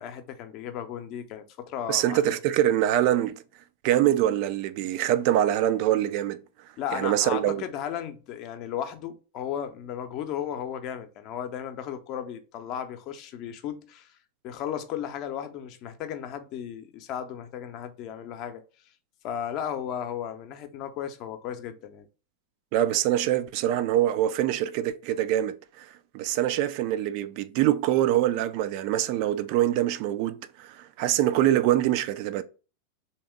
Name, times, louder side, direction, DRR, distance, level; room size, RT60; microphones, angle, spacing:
voice 1, 0.0-2.4 6.8-14.1 14.4-18.6 19.2-22.1, left 9 dB, 40° left, 0.6 m, -35 dB
voice 2, 1.9-3.4 3.8-6.4 6.9-7.6 22.7-25.9 26.1-32.4, right 12 dB, 45° right, 0.4 m, -24 dB
3.5 x 2.9 x 4.6 m
figure-of-eight pair, 90°, 0 cm